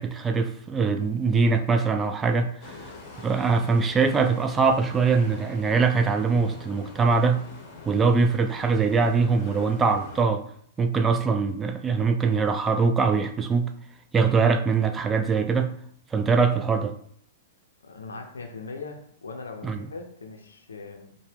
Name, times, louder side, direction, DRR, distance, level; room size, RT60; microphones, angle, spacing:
voice 1, 0.0-2.8 3.2-7.4 7.8-10.4 10.8-13.7 14.1-15.7 16.1-16.9 19.6-19.9, right 4 dB, 15° right, 0.4 m, -22 dB
sound 1, 2.6-10.3, left 3 dB, 35° left, 1.0 m, -44 dB
voice 2, 17.8-21.2, left 4 dB, 75° left, 0.6 m, -40 dB
4.5 x 2.2 x 3.4 m
figure-of-eight pair, 105°, 0 cm